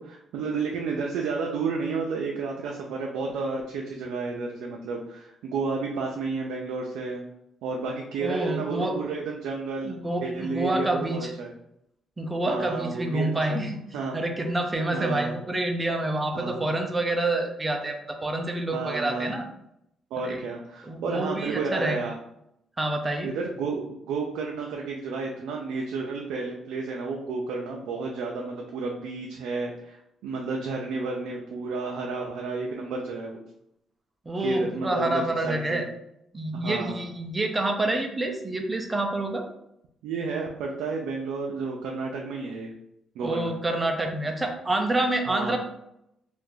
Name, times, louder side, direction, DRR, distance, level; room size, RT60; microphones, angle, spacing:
voice 1, 0.0-7.2 7.6-11.5 12.5-13.7 13.9-14.2 14.9-15.4 16.3-16.5 18.7-19.3 20.1-22.2 23.2-33.4 34.4-35.8 36.5-37.0 40.0-42.7 43.1-43.5 45.2-45.6, right 4 dB, 90° right, -1 dB, 0.4 m, -31 dB
voice 2, 8.2-8.9 9.8-11.3 12.2-13.8 14.1-19.4 20.2-20.4 20.8-22.0 22.8-23.3 34.3-35.9 36.3-39.4 43.2-45.6, right 1 dB, 20° right, 3 dB, 0.6 m, -27 dB
2.8 x 2.5 x 3.8 m, 0.79 s
cardioid pair, 90°, 0 cm